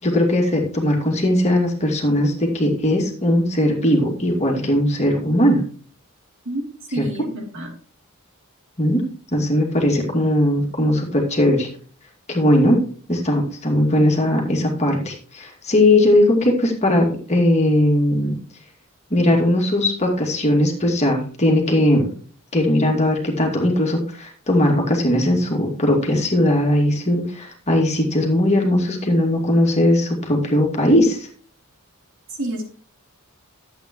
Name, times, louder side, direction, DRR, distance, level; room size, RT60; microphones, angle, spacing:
voice 1, 0.0-5.6 7.0-7.1 8.8-9.0 9.3-11.7 12.3-12.8 13.1-18.4 19.1-22.1 22.5-31.3, left 1 dB, 30° left, 0 dB, 2.3 m, -19 dB
voice 2, 6.9-7.7 32.3-32.7, right 1 dB, 60° right, 0 dB, 3.0 m, -28 dB
12.0 x 8.2 x 3.1 m, 0.42 s
head